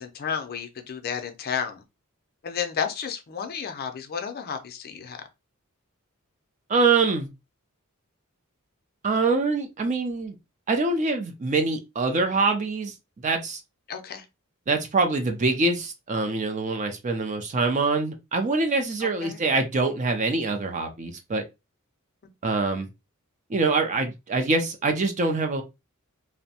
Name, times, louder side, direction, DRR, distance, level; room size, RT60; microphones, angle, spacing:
voice 1, 0.0-1.8 2.4-5.2 13.9-14.3 19.0-19.4, left 7 dB, 45° left, 0.4 m, -32 dB
voice 2, 6.7-7.3 9.0-10.3 10.7-12.9 13.2-13.6 14.7-21.4 22.4-22.9 23.5-25.6, right 3 dB, 35° right, 0.4 m, -24 dB
2.6 x 2.1 x 2.7 m
head